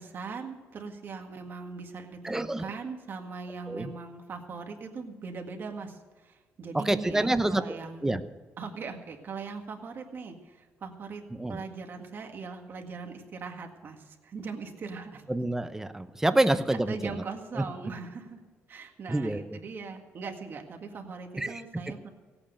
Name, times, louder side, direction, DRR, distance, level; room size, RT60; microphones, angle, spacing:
voice 1, 0.0-8.1 8.6-11.2 11.5-15.2 16.9-18.4 18.7-22.1, right 4 dB, 45° right, 4 dB, 1.8 m, -40 dB
voice 2, 2.2-2.7 3.7-3.9 6.7-7.6 8.0-8.2 11.3-11.6 15.3-16.9 17.6-17.7 19.1-19.6 21.4-21.6, right 1 dB, 10° right, 11 dB, 0.7 m, -27 dB
17.0 x 8.8 x 6.5 m, 1.4 s
cardioid pair, 120°, 5 cm